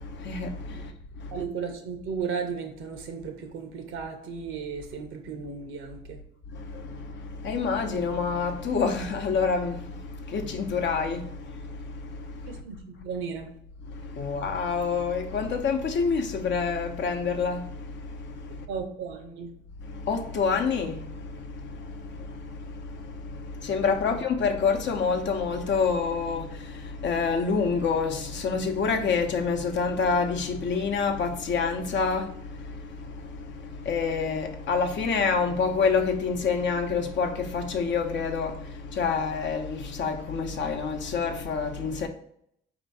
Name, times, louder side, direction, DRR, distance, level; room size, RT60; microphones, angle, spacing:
voice 1, 0.0-1.4 6.5-12.6 13.9-18.7 19.8-42.1, left 5 dB, 70° left, 0.8 m, -28 dB
voice 2, 1.3-6.2 12.4-13.5 18.7-19.5 24.1-24.2, right 6 dB, 85° right, 0.9 m, -35 dB
4.4 x 2.9 x 4.1 m
cardioid pair, 90°, 20 cm